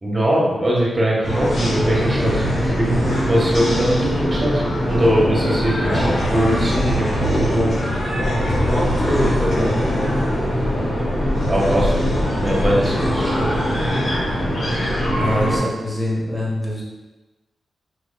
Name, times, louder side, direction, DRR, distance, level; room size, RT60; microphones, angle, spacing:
voice 1, 0.0-7.7 11.5-12.1 12.3-13.6, right 1 dB, 35° right, -4 dB, 1.5 m, -21 dB
sound 1, 1.2-15.6, equal, 70° left, 1.2 m, -21 dB
voice 2, 8.5-10.1 15.2-16.8, left 1 dB, 25° left, -3 dB, 1.4 m, -25 dB
4.9 x 3.0 x 2.3 m, 1.1 s
supercardioid pair, 45°, 0 cm